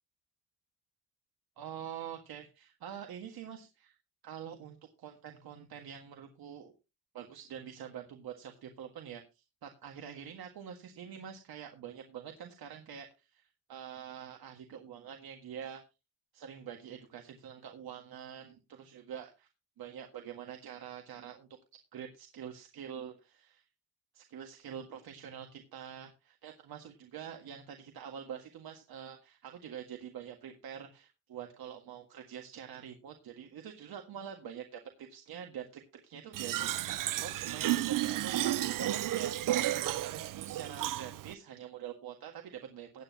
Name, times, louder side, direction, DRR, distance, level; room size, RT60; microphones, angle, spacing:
voice 1, 1.6-4.0 4.2-6.7 7.1-15.8 16.3-19.5 19.8-21.5 21.9-23.7 24.1-43.0, right 8 dB, 80° right, 3 dB, 1.8 m, -46 dB
Fill (with liquid), 36.3-41.3, right 14 dB, 60° right, 0.5 m, -32 dB
16.5 x 9.5 x 2.9 m, 0.27 s
wide cardioid pair, 180°, 36 cm